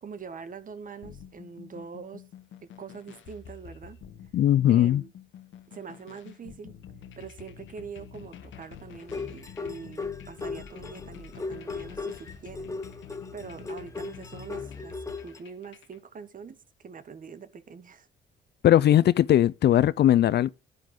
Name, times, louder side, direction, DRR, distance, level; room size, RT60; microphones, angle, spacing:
voice 1, 0.0-2.2 2.8-4.0 4.7-5.1 5.7-6.7 7.2-12.7 13.3-14.9 15.2-18.1, right 6 dB, 45° right, 1.3 m, -43 dB
sound 1, 1.0-16.0, left 7 dB, 75° left, 1.3 m, -47 dB
voice 2, 4.3-5.0 18.6-20.5, left 12 dB, 60° left, 0.4 m, -19 dB
sound 2, 9.0-15.4, left 4 dB, 15° left, 0.9 m, -37 dB
10.5 x 9.8 x 3.7 m
cardioid pair, 90°, 20 cm